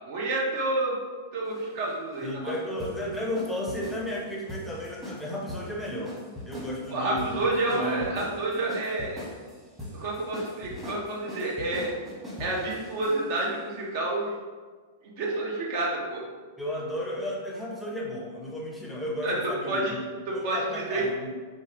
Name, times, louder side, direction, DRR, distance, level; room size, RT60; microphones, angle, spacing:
voice 1, 0.1-1.0 1.3-2.6 6.9-9.3 9.9-11.9 12.4-14.3 15.0-16.2 19.2-19.3 19.7-19.9 20.3-21.0, right 2 dB, 55° right, -3 dB, 0.8 m, -29 dB
sound 1, 1.4-13.5, left 1 dB, 10° right, 1.1 m, -41 dB
voice 2, 2.2-6.2 6.4-8.0 16.6-20.0 20.3-21.3, equal, 5° left, -3 dB, 0.6 m, -33 dB
3.1 x 2.3 x 2.8 m, 1.5 s
hypercardioid pair, 105°, 0 cm